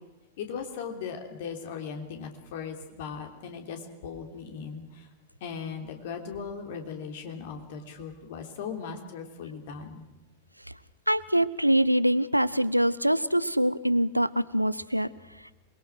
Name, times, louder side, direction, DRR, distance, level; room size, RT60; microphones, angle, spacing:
voice 1, 0.4-5.1 5.4-10.0, left 6 dB, 55° left, 5 dB, 3.2 m, -38 dB
voice 2, 11.1-15.1, right 1 dB, 90° right, 16 dB, 0.8 m, -24 dB
27.5 x 21.5 x 6.2 m, 1.0 s
figure-of-eight pair, 90°, 0 cm